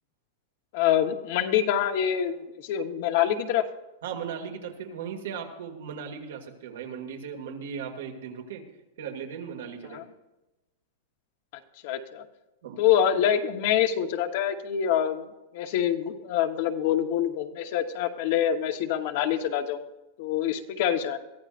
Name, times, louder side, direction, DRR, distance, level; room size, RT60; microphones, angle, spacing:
voice 1, 0.7-3.6 9.9-10.0 11.8-12.2 12.8-15.3 15.5-19.8 20.2-21.2, left 10 dB, 50° left, 7 dB, 1.1 m, -25 dB
voice 2, 4.0-8.6 9.0-10.1 12.6-12.8, right 7 dB, 80° right, 3 dB, 2.3 m, -37 dB
22.5 x 14.5 x 2.6 m, 1.0 s
supercardioid pair, 160°, 0 cm